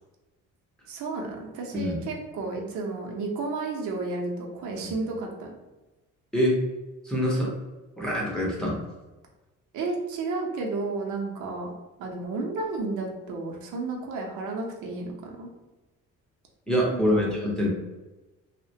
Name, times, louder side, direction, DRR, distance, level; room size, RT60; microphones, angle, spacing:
voice 1, 0.9-5.6 9.7-11.7 12.0-15.5 16.9-17.2, right 3 dB, 75° right, 0 dB, 0.6 m, -32 dB
voice 2, 7.0-7.5 8.0-8.8 16.7-17.7, equal, ahead, -4 dB, 0.6 m, -25 dB
2.3 x 2.1 x 2.7 m, 1.1 s
cardioid pair, 115°, 30 cm